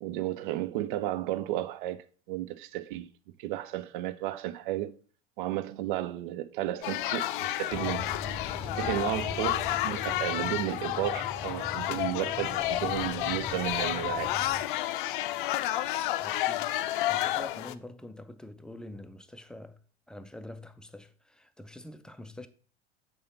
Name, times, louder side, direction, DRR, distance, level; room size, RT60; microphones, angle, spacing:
voice 1, 0.0-3.1 3.4-5.0 5.4-8.1 8.7-14.3, right 14 dB, 50° right, 0.6 m, -33 dB
sound 1, 6.8-17.7, left 14 dB, 55° left, 0.5 m, -31 dB
sound 2, 7.7-14.6, left 3 dB, 20° left, 0.8 m, -41 dB
voice 2, 16.2-19.8 20.1-22.5, left 1 dB, 5° left, 0.4 m, -46 dB
6.7 x 4.0 x 5.3 m
figure-of-eight pair, 75°, 32 cm